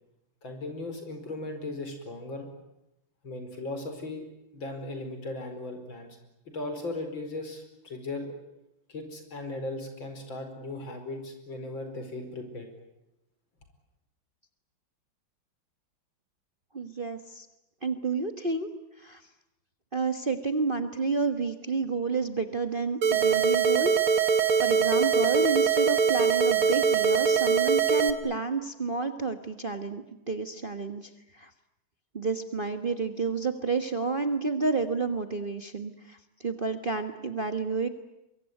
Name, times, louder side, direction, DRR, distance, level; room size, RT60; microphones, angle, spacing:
voice 1, 0.4-2.5 3.2-4.3 4.5-6.2 6.5-8.3 8.9-12.7, left 2 dB, 65° left, 6 dB, 5.5 m, -37 dB
voice 2, 16.7-17.5 17.8-18.7 19.0-19.2 19.9-23.9 24.3-31.5 32.1-37.9, right 4 dB, 30° right, 7 dB, 1.4 m, -30 dB
sound 1, 23.0-28.1, right 7 dB, 75° right, 2.4 m, -23 dB
24.0 x 23.0 x 9.5 m, 0.87 s
omnidirectional pair, 2.3 m